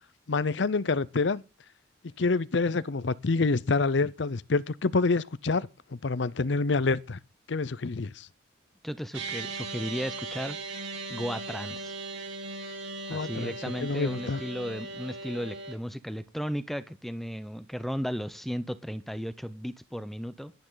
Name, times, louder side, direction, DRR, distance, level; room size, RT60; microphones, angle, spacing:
voice 1, 0.3-1.4 2.2-5.7 6.0-7.2 7.5-8.3 13.1-13.5 13.8-14.4, left 3 dB, 65° left, 0.6 m, -27 dB
voice 2, 8.8-10.6 11.1-12.0 13.1-20.5, equal, ahead, 0.9 m, -35 dB
sound 1, 9.1-15.7, right 3 dB, 85° right, 6.2 m, -38 dB
17.5 x 12.5 x 4.0 m
head